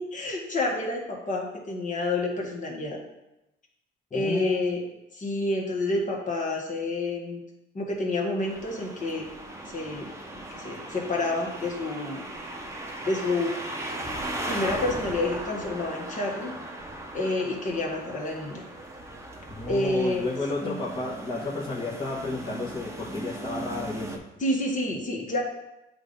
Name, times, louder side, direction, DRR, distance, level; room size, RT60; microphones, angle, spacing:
voice 1, 0.1-3.0 4.1-4.8 5.1-7.4 7.7-9.3 9.7-10.1 10.5-12.2 13.0-13.5 14.5-16.5 17.1-18.7 19.7-20.2 20.6-20.8 24.4-25.4, left 2 dB, 40° left, -1 dB, 1.5 m, -29 dB
voice 2, 4.1-4.6 19.5-24.2, left 3 dB, 25° left, -5 dB, 1.1 m, -32 dB
sound 1, 8.4-24.2, right 1 dB, 15° right, 0.8 m, -38 dB
7.8 x 2.7 x 5.2 m, 0.91 s
cardioid pair, 90°, 20 cm